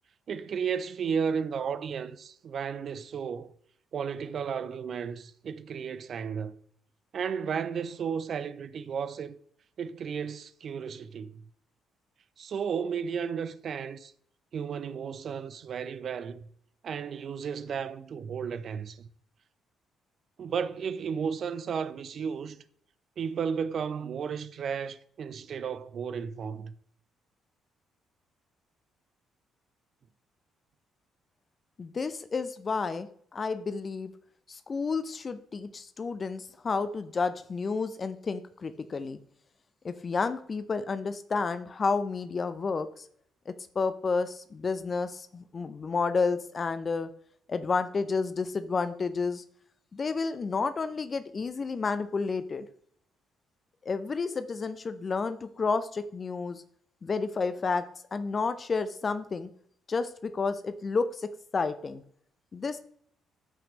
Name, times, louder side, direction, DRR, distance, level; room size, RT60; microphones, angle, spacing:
voice 1, 0.3-3.5 3.9-6.5 7.1-9.4 9.8-11.4 12.4-14.1 14.5-16.5 16.8-19.1 20.4-22.6 23.2-26.7, right 6 dB, 50° right, 0.6 m, -33 dB
voice 2, 31.8-33.1 33.3-34.1 34.5-39.2 39.8-43.0 43.5-47.1 47.5-49.4 49.9-52.7 53.8-56.6 57.0-57.8 58.1-59.5 59.9-61.1 61.5-62.0 62.5-62.8, left 4 dB, 35° left, 0.7 m, -30 dB
14.0 x 5.8 x 3.1 m
figure-of-eight pair, 45°, 0 cm